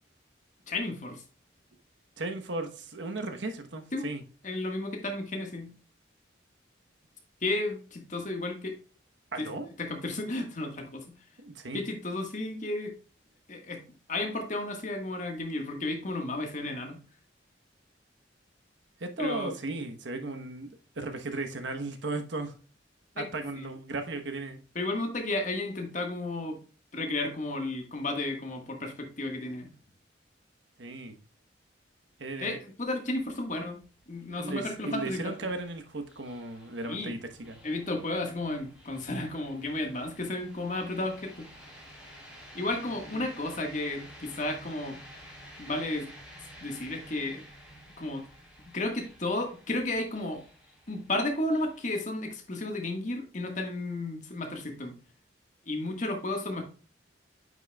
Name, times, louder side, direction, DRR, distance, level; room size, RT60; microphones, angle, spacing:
voice 1, 0.7-1.2 3.9-4.1 4.4-5.7 7.4-8.8 9.4-9.5 9.8-11.2 11.7-13.0 13.5-13.8 14.1-17.0 19.2-19.5 23.1-23.2 23.5-23.7 24.7-26.6 26.9-29.7 32.4-33.8 34.1-35.5 36.8-37.2 37.6-41.5 42.5-44.9 45.6-46.1 46.6-47.4 48.0-48.2 48.7-50.4 50.9-54.9 55.7-56.6, left 2 dB, 40° left, 1.5 m, -33 dB
voice 2, 2.2-4.2 9.3-9.7 11.4-11.8 19.0-22.5 23.2-24.6 30.8-31.2 32.2-32.6 34.4-37.6 43.1-43.3, right 2 dB, 75° right, 1.0 m, -36 dB
sound 1, 32.9-51.8, equal, 5° right, 2.9 m, -52 dB
9.2 x 6.1 x 2.3 m
head